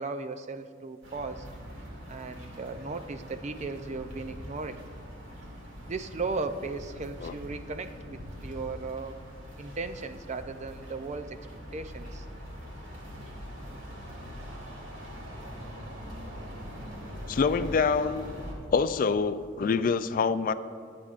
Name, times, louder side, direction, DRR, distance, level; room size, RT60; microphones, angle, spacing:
voice 1, 0.0-1.5 2.1-4.8 5.9-9.2 9.6-11.4 11.7-12.3, right 3 dB, 35° right, 9 dB, 0.5 m, -36 dB
sound 1, 1.0-18.5, equal, 85° right, 2.4 m, -43 dB
voice 2, 17.3-18.3 18.7-20.5, left 5 dB, 45° left, 12 dB, 0.3 m, -26 dB
23.0 x 8.6 x 2.5 m, 2.2 s
head